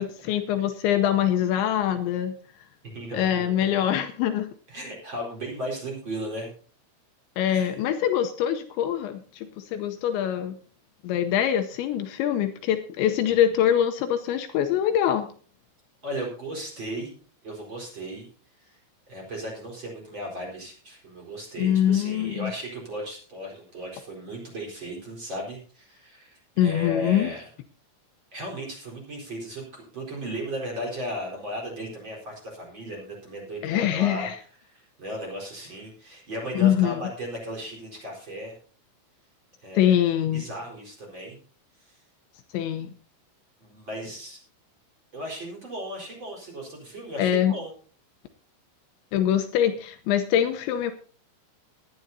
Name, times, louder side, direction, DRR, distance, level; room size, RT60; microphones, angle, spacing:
voice 1, 0.0-2.3 3.1-4.5 7.4-10.6 11.0-15.3 21.6-22.5 26.6-27.3 33.6-34.4 36.6-37.0 39.8-40.5 42.5-42.9 47.2-47.5 49.1-50.9, left 10 dB, 80° left, 7 dB, 3.0 m, -24 dB
voice 2, 2.8-3.4 4.7-6.5 7.5-7.8 13.3-13.4 16.0-17.1 17.4-18.3 18.6-18.8 19.1-27.5 28.3-34.3 34.6-38.5 39.6-40.0 40.3-41.4 41.9-42.0 43.6-44.4 45.1-47.7, equal, 25° right, -1 dB, 4.7 m, -36 dB
18.5 x 11.0 x 2.7 m, 0.42 s
omnidirectional pair, 5.6 m